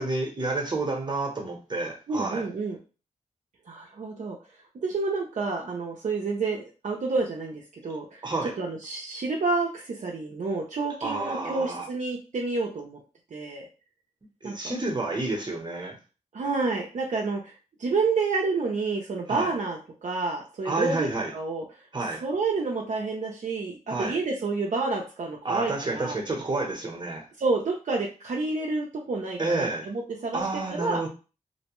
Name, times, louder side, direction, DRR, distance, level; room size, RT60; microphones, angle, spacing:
voice 1, 0.0-2.5 8.2-8.6 11.0-11.9 14.4-16.0 19.3-19.5 20.6-21.3 21.9-22.2 23.9-24.2 25.4-27.3 29.4-29.9 30.3-31.1, right 2 dB, 35° right, 0.9 m, -29 dB
voice 2, 2.1-2.8 3.7-4.4 4.8-8.2 8.6-13.0 13.3-13.6 14.4-14.5 16.3-17.5 17.8-21.1 21.3-21.6 22.2-26.2 27.4-30.4 30.7-31.0, right 3 dB, 65° right, 0.6 m, -29 dB
2.6 x 2.1 x 3.0 m
cardioid pair, 65°, 13 cm